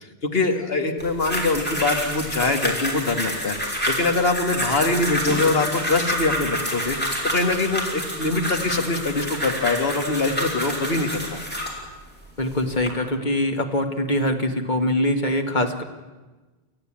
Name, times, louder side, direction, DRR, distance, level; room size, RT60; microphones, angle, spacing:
voice 1, 0.2-7.0 7.2-11.4, left 3 dB, 70° left, 4 dB, 2.1 m, -23 dB
sound 1, 1.0-11.8 12.4-12.9, equal, 10° left, 4.8 m, -28 dB
voice 2, 12.4-15.8, left 1 dB, 50° left, 5 dB, 2.0 m, -23 dB
30.0 x 14.0 x 8.8 m, 1.2 s
omnidirectional pair, 1.0 m